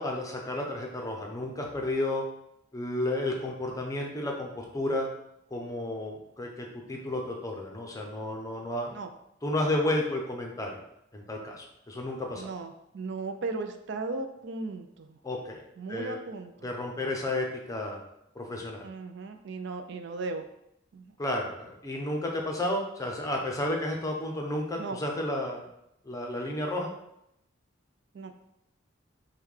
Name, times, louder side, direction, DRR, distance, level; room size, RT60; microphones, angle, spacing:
voice 1, 0.0-2.2 2.7-5.1 5.5-8.9 9.4-10.7 11.1-12.5 15.2-15.6 15.9-16.2 16.6-18.0 18.3-18.9 21.2-25.7 26.0-26.9, left 1 dB, 15° left, 0 dB, 0.6 m, -32 dB
voice 2, 12.3-15.2 15.8-16.7 18.8-20.5 20.9-21.1 24.8-25.0 28.1-28.3, right 3 dB, 60° right, 7 dB, 0.4 m, -36 dB
5.4 x 2.2 x 3.2 m, 0.79 s
head